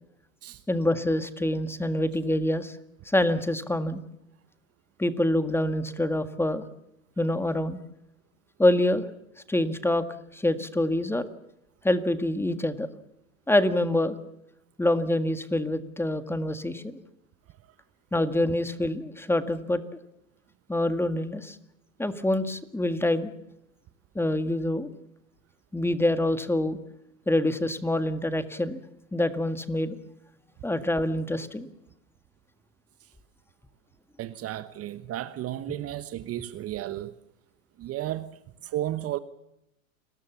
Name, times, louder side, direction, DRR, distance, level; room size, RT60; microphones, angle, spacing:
voice 1, 0.7-2.8 3.1-4.0 5.0-6.6 7.2-7.8 8.6-9.1 9.5-10.1 10.3-11.3 11.8-12.9 13.5-14.2 14.8-17.0 18.1-19.8 20.7-21.6 22.0-23.3 24.2-24.9 25.7-26.8 27.3-28.8 29.1-30.0 30.6-31.7, left 1 dB, 5° left, 1.8 m, -26 dB
voice 2, 34.2-37.1 37.8-39.2, right 13 dB, 35° right, 1.1 m, -33 dB
29.5 x 20.5 x 7.1 m
hypercardioid pair, 100°, 42 cm